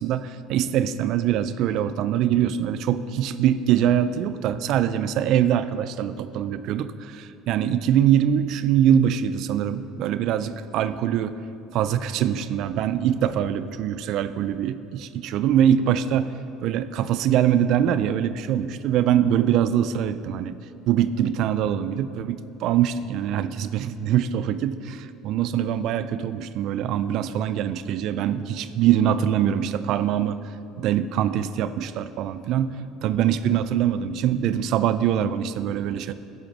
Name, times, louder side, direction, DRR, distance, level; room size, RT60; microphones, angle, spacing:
voice 1, 0.0-11.3 11.7-16.3 16.6-20.5 20.9-36.1, right 10 dB, 65° right, 12 dB, 0.4 m, -23 dB
11.5 x 5.0 x 6.0 m, 2.6 s
supercardioid pair, 95°, 0 cm